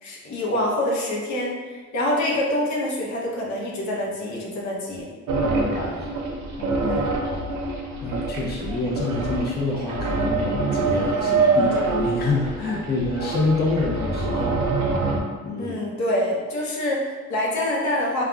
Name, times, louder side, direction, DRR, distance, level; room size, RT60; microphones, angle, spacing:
voice 1, 0.0-5.1 6.8-7.1 15.6-18.2, left 1 dB, 65° left, -3 dB, 0.8 m, -26 dB
sound 1, 5.3-15.2, right 3 dB, 70° right, 0.5 m, -25 dB
voice 2, 5.4-6.2 6.5-7.4 8.0-14.6 15.4-15.7, left 3 dB, 35° left, -3 dB, 0.6 m, -27 dB
3.7 x 2.3 x 2.3 m, 1.4 s
cardioid pair, 90°, 30 cm